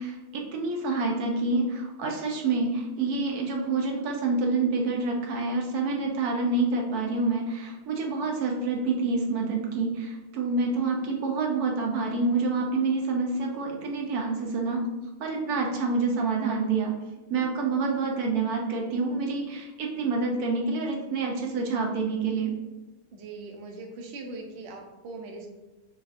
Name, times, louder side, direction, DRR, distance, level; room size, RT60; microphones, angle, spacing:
voice 1, 0.0-14.9 15.2-16.9 17.3-22.5, right 3 dB, 85° right, 1 dB, 1.2 m, -27 dB
voice 2, 23.1-25.5, right 3 dB, 60° right, 1 dB, 0.7 m, -40 dB
4.6 x 2.4 x 2.5 m, 1.1 s
omnidirectional pair, 1.6 m